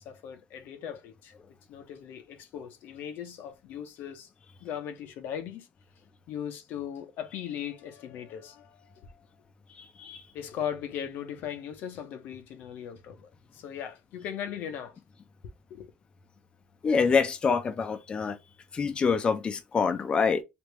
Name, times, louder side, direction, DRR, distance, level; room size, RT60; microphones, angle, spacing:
voice 1, 0.0-1.3 1.7-4.3 4.6-5.7 6.3-9.2 10.3-15.0 15.7-15.9, left 9 dB, 70° left, 0.6 m, -38 dB
voice 2, 16.8-18.4 18.7-20.4, left 5 dB, 30° left, 0.4 m, -26 dB
3.3 x 2.5 x 3.1 m
cardioid pair, 130°, 3 cm